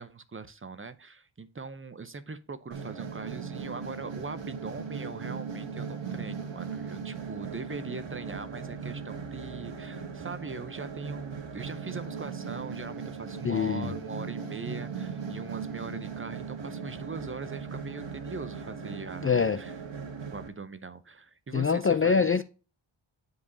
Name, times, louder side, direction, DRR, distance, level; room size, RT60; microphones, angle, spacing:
voice 1, 0.0-19.7 20.3-22.3, right 4 dB, 25° right, 0.6 m, -41 dB
sound 1, 2.7-20.5, right 5 dB, 65° right, 1.4 m, -38 dB
voice 2, 13.4-13.9 19.2-19.6 21.5-22.4, left 6 dB, 30° left, 0.4 m, -24 dB
9.7 x 4.8 x 2.6 m
wide cardioid pair, 95°, 47 cm